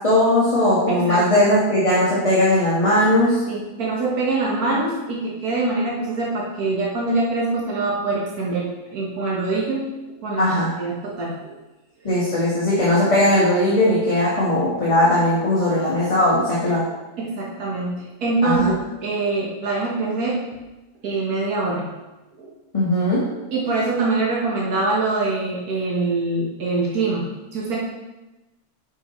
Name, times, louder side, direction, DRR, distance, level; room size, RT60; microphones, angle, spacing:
voice 1, 0.0-3.4 10.4-10.7 12.0-16.8 18.4-18.7 22.7-23.2, left 1 dB, 25° left, -8 dB, 1.4 m, -18 dB
voice 2, 0.9-1.3 3.3-9.9 10.2-10.5 10.8-11.6 17.2-20.4 21.0-21.9 22.4-22.5 23.5-27.3 27.5-27.8, right 3 dB, 90° right, -4 dB, 1.7 m, -24 dB
8.6 x 5.4 x 3.1 m, 1.1 s
omnidirectional pair, 1.5 m